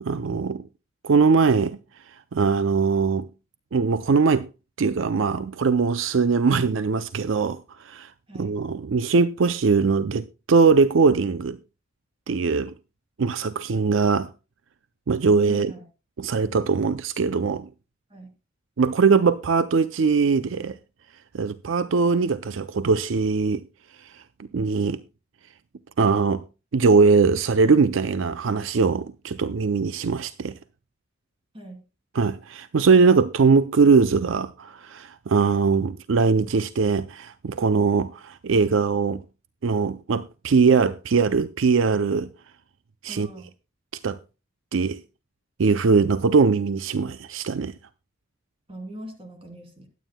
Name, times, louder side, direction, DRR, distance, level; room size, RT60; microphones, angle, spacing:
voice 1, 0.0-0.6 1.0-1.8 2.3-3.3 3.7-4.5 4.8-11.6 12.3-12.7 13.2-14.3 15.1-15.7 16.2-17.7 18.8-20.8 21.3-23.6 24.0-24.2 24.5-25.0 26.0-26.4 26.7-30.6 32.1-39.2 39.6-42.3 43.0-43.3 44.0-44.2 44.7-45.0 45.6-47.7, right 4 dB, 70° right, 0.5 m, -21 dB
voice 2, 15.5-15.8 18.1-18.3 31.5-31.8 43.1-43.5 48.7-49.9, right 1 dB, 30° right, 2.9 m, -41 dB
22.0 x 9.2 x 2.2 m
head